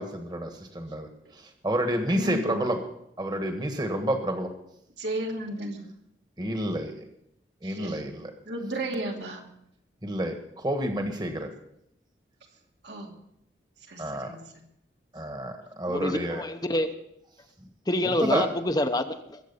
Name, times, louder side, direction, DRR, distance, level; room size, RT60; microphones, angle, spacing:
voice 1, 0.0-2.8 3.2-4.5 6.4-6.9 7.6-8.3 10.0-11.5 14.0-14.3 15.1-16.4 18.0-18.5, right 1 dB, 25° right, 5 dB, 1.5 m, -29 dB
voice 2, 2.1-2.7 5.0-5.9 7.6-8.0 8.4-9.4 12.8-13.1 13.8-14.4, right 1 dB, 85° right, 1 dB, 2.6 m, -34 dB
voice 3, 15.9-16.9 17.9-19.4, left 1 dB, 20° left, 7 dB, 0.8 m, -27 dB
21.5 x 7.9 x 5.6 m, 0.77 s
head